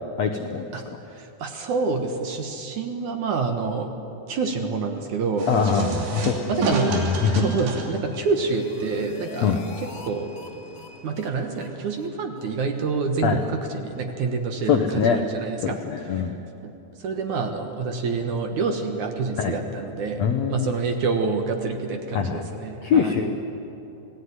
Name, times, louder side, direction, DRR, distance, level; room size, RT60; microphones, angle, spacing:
voice 1, 0.2-1.0 5.5-6.3 6.7-7.4 9.4-9.6 13.2-13.4 14.7-15.2 15.6-16.4 19.4-19.5 20.2-20.7 22.1-22.4 22.8-23.4, left 7 dB, 80° left, 5 dB, 1.5 m, -23 dB
voice 2, 1.2-3.9 4.3-5.9 6.5-6.9 7.3-9.5 10.0-10.3 11.0-15.8 16.6-16.7 17.0-23.1, right 4 dB, 60° right, 5 dB, 2.4 m, -27 dB
sound 1, 5.4-11.9, right 4 dB, 85° right, 5.2 m, -33 dB
sound 2, 8.1-10.1 10.4-10.5 10.8-10.9 11.2-11.3 11.6-11.7 12.0-12.1 12.4-12.5 12.8-12.9 13.2-13.3, left 4 dB, 55° left, 2.9 m, -44 dB
27.5 x 18.5 x 9.7 m, 3.0 s
omnidirectional pair, 4.7 m